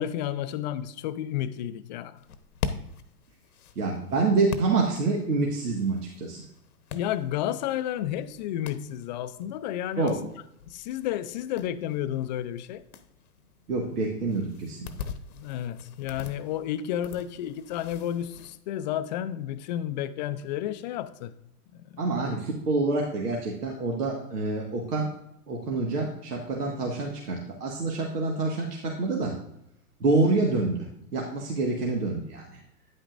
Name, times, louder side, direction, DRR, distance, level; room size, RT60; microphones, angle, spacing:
voice 1, 0.0-2.2 6.9-10.2 10.7-12.8 15.3-21.3 21.7-22.3, left 11 dB, 30° left, 0.4 m, -31 dB
sound 1, 2.2-18.6, left 7 dB, 75° left, 1.0 m, -42 dB
voice 2, 3.7-6.4 10.0-10.2 13.7-14.9 22.0-25.1 25.5-29.4 30.0-32.6, right 3 dB, 85° right, 1.7 m, -27 dB
9.9 x 8.7 x 2.5 m
hypercardioid pair, 120°, 46 cm